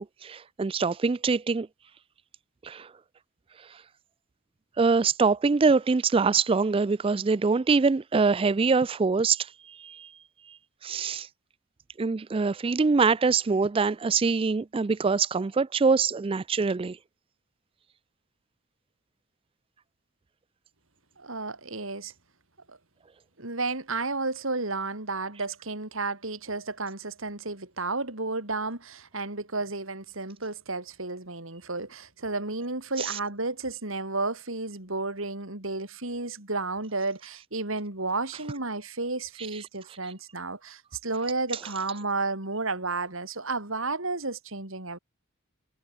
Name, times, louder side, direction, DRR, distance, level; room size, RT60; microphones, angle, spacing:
voice 1, 0.0-1.7 2.6-2.9 4.8-10.1 10.5-10.6 10.8-11.3 12.0-17.0 33.0-33.2, right 4 dB, 25° right, 0.3 m, -24 dB
voice 2, 21.2-22.1 22.7-22.8 23.4-45.0, right 3 dB, 70° right, 3.9 m, -32 dB
head